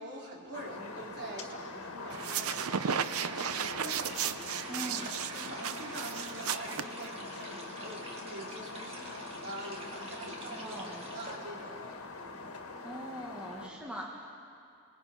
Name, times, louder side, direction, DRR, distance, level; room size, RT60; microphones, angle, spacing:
voice 1, 0.0-4.1 5.3-11.9 13.5-13.8, right 1 dB, 55° right, -3 dB, 3.8 m, -45 dB
sound 1, 0.5-13.7, left 3 dB, 80° left, 1.8 m, -44 dB
sound 2, 2.1-7.5, right 8 dB, 90° right, 0.6 m, -35 dB
sound 3, 4.0-11.4, right 2 dB, 30° right, 2.1 m, -48 dB
voice 2, 4.7-5.1 10.5-11.1 12.8-14.3, equal, 5° right, -3 dB, 1.6 m, -42 dB
28.0 x 20.0 x 5.1 m, 2.4 s
head